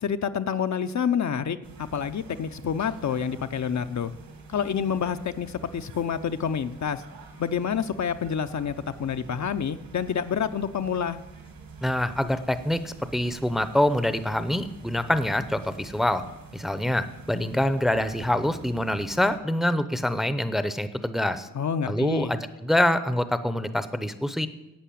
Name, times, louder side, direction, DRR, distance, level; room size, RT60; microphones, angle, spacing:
voice 1, 0.0-4.1 4.5-7.0 7.4-11.2 21.5-22.3, left 7 dB, 55° left, 9 dB, 0.7 m, -28 dB
sound 1, 1.6-19.4, right 4 dB, 75° right, 2.7 m, -46 dB
voice 2, 11.8-16.2 16.5-21.5 21.9-24.5, left 1 dB, ahead, 12 dB, 0.7 m, -25 dB
11.5 x 8.3 x 8.5 m, 1.0 s
wide cardioid pair, 105°, 34 cm